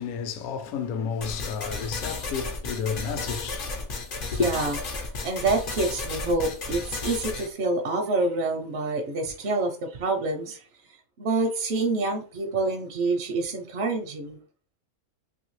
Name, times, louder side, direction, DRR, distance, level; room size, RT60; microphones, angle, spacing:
voice 1, 0.0-3.7 4.3-4.5, left 6 dB, 75° left, 1.0 m, -31 dB
sound 1, 1.2-7.5, left 3 dB, 55° left, 0.6 m, -33 dB
voice 2, 4.3-4.8 5.0-10.6 11.2-14.4, right 3 dB, 65° right, 0.7 m, -27 dB
2.8 x 2.7 x 3.0 m
omnidirectional pair, 1.6 m